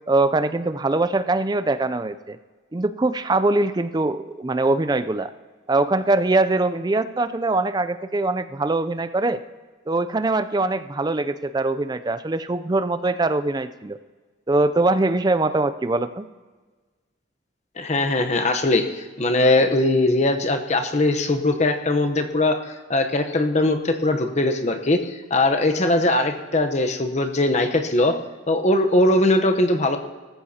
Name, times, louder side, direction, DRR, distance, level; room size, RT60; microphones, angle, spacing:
voice 1, 0.1-2.4 2.7-5.3 5.7-9.4 9.9-14.0 14.5-16.3, right 2 dB, 20° right, 12 dB, 0.4 m, -22 dB
voice 2, 17.8-22.6 22.9-28.2 28.5-30.0, left 2 dB, 35° left, 6 dB, 0.9 m, -20 dB
18.0 x 14.5 x 2.8 m, 1.4 s
head